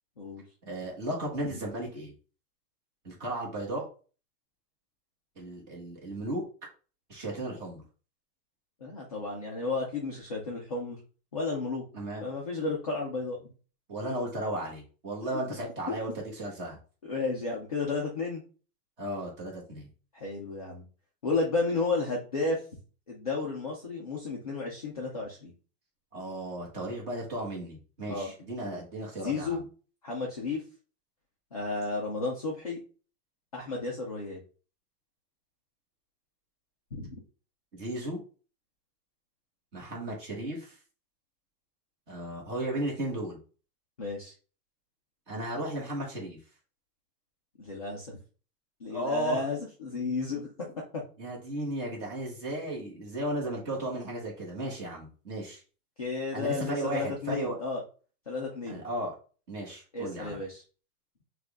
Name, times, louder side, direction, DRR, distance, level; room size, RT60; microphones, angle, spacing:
voice 1, 0.6-2.1 3.0-3.9 5.4-6.4 7.1-7.8 11.9-12.3 13.9-16.8 19.0-19.9 26.1-29.6 37.7-38.2 39.7-40.8 42.1-43.4 45.3-46.4 48.9-49.4 51.2-55.6 56.3-57.6 58.7-59.1 59.5-60.4, right 1 dB, 20° right, -3 dB, 1.4 m, -35 dB
voice 2, 8.8-11.0 11.3-11.8 12.2-13.4 17.0-18.4 20.2-20.8 21.2-22.6 23.1-25.5 28.1-28.3 29.2-29.6 30.0-30.6 31.5-32.8 33.5-34.4 36.9-37.2 44.0-44.3 47.6-48.2 48.8-51.0 56.0-57.8 58.3-58.8 59.9-60.6, left 3 dB, 25° left, -3 dB, 0.4 m, -32 dB
6.3 x 2.4 x 3.4 m, 0.37 s
supercardioid pair, 175°, 47 cm